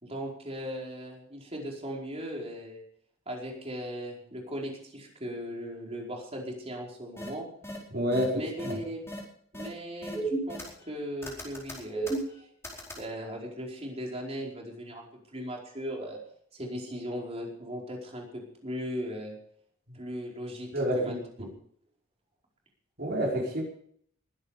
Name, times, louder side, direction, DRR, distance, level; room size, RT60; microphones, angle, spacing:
voice 1, 0.0-2.8 3.3-7.5 8.3-9.0 9.5-12.5 12.9-16.2 16.5-19.4 19.9-20.7 20.9-21.2, equal, 30° right, -1 dB, 4.8 m, -38 dB
sound 1, 7.2-7.3 7.6-7.8 8.1-8.2 8.6-8.7 9.1-9.2 9.5-9.7 10.0-10.9 11.2-13.0, right 2 dB, 15° left, 4.5 m, -34 dB
voice 2, 7.9-8.7 19.9-20.0 20.7-21.5 23.0-23.6, equal, 50° right, -1 dB, 5.1 m, -29 dB
22.0 x 10.0 x 5.1 m, 0.63 s
head